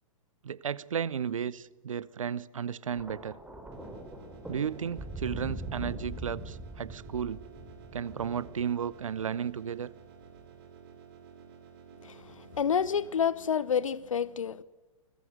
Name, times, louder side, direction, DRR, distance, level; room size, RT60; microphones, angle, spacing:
voice 1, 0.4-3.4 4.5-7.4 7.9-9.9, right 7 dB, 65° right, 0.9 m, -34 dB
Thunder, 2.9-9.2 10.2-10.5, right 1 dB, 5° right, 5.1 m, -42 dB
sound 1, 3.7-13.1, right 7 dB, 45° right, 5.2 m, -52 dB
voice 2, 12.0-14.6, left 7 dB, 65° left, 1.1 m, -29 dB
25.5 x 20.0 x 6.4 m
figure-of-eight pair, 110°, 18 cm